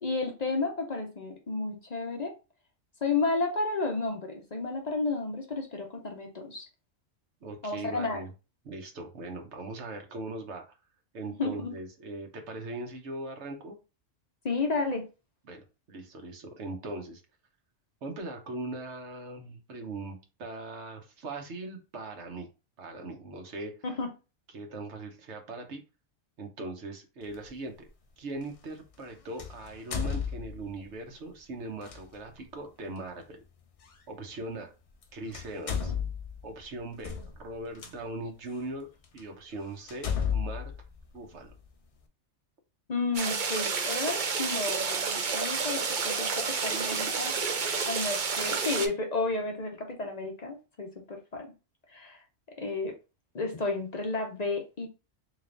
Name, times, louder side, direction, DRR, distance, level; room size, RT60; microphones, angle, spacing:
voice 1, 0.0-2.3 3.0-6.7 7.6-8.2 11.3-11.7 14.4-15.0 23.8-24.1 42.9-51.5 51.9-52.2 52.6-52.9 53.3-54.9, left 3 dB, 40° left, 2 dB, 0.7 m, -32 dB
voice 2, 7.4-8.3 8.6-10.6 11.1-13.8 15.4-17.2 18.0-22.5 22.8-23.7 24.5-25.8 26.4-27.9 28.2-33.4 34.1-34.7 35.1-35.9 36.4-40.7 41.1-41.5, right 2 dB, 65° right, 4 dB, 1.2 m, -40 dB
sound 1, 27.3-27.5 29.4-30.9 31.8-32.0 33.9-34.0 34.9-35.0 35.3-37.9 38.6-38.7 39.2-39.3 39.9-41.7, left 7 dB, 65° left, 0.3 m, -33 dB
sound 2, 43.1-48.9, right 5 dB, 50° right, 0.6 m, -30 dB
3.9 x 3.3 x 2.5 m, 0.30 s
omnidirectional pair, 1.3 m